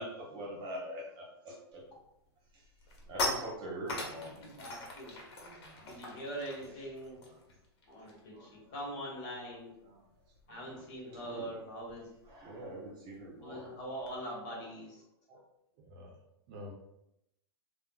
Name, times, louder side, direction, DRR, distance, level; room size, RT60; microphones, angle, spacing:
voice 1, 0.0-1.8 3.1-4.6 5.4-5.8 6.1-6.2 8.3-8.5 9.9-10.0 11.1-11.6 12.3-13.7 15.3-15.4, right 1 dB, 30° right, -3 dB, 1.0 m, -44 dB
sound 1, 1.8-2.1 2.4-8.4 8.6-8.9 9.2-14.2, left 2 dB, 70° left, 0.9 m, -42 dB
voice 2, 4.4-5.1 5.8-7.2 7.9-9.7 10.5-12.1 13.4-15.0, equal, 45° left, -3 dB, 1.3 m, -43 dB
voice 3, 15.8-16.2 16.5-16.7, left 1 dB, 50° right, 0 dB, 0.6 m, -48 dB
3.5 x 2.1 x 2.3 m, 0.83 s
hypercardioid pair, 130°, 14 cm